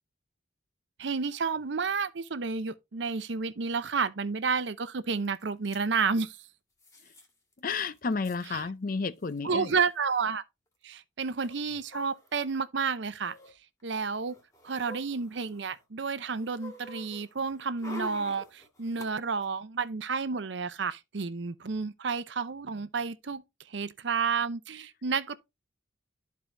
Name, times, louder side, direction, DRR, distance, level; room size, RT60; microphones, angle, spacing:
voice 1, 1.0-6.4 9.4-10.4 10.8-13.3 13.8-14.3 14.6-23.4 23.7-25.3, right 5 dB, 65° right, 0.6 m, -31 dB
sound 1, 5.2-5.3 5.5-5.8 6.8-7.3 7.6-7.7 7.9-8.5 9.3-9.4 9.6-9.8 11.4-12.6 13.1-13.5 14.1-15.8 16.2-19.1 19.4-19.5, left 1 dB, 15° left, 1.8 m, -46 dB
voice 2, 7.6-9.7, left 4 dB, 45° left, 0.6 m, -32 dB
13.0 x 4.7 x 2.6 m
head